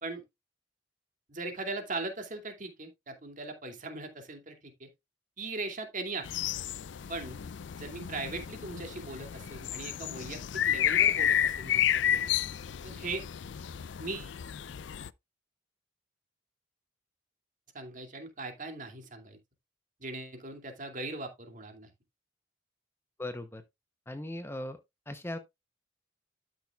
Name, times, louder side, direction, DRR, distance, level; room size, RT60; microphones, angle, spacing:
voice 1, 1.3-4.9 5.4-6.5 7.1-7.4 7.8-10.4 10.7-12.3 12.8-13.2 14.0-14.4 17.7-19.4 20.0-21.9, right 3 dB, 45° right, 2.5 m, -39 dB
sound 1, 6.3-15.1, left 10 dB, 70° left, 0.4 m, -31 dB
voice 2, 23.2-23.6 24.1-24.8 25.1-25.4, left 1 dB, 15° left, 0.8 m, -38 dB
12.5 x 6.2 x 2.4 m
head